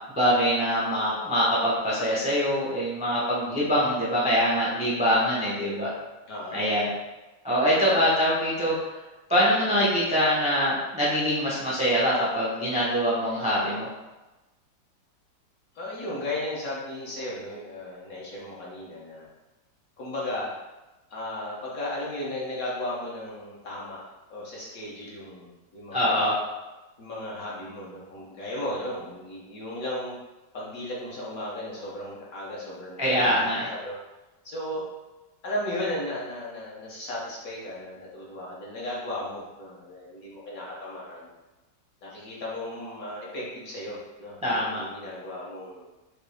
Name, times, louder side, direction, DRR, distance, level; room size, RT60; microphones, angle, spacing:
voice 1, 0.2-5.9 6.5-6.9 7.4-8.9 9.3-13.9 25.9-26.4 33.0-33.7 44.4-44.8, equal, 5° right, -7 dB, 0.5 m, -24 dB
voice 2, 3.4-3.7 6.3-6.7 15.7-19.3 20.0-20.5 21.1-24.0 24.3-26.2 27.0-30.1 30.5-34.0 34.4-34.9 35.4-41.3 42.0-45.9, left 1 dB, 55° left, -6 dB, 1.4 m, -35 dB
5.2 x 2.8 x 3.3 m, 1.1 s
omnidirectional pair, 2.0 m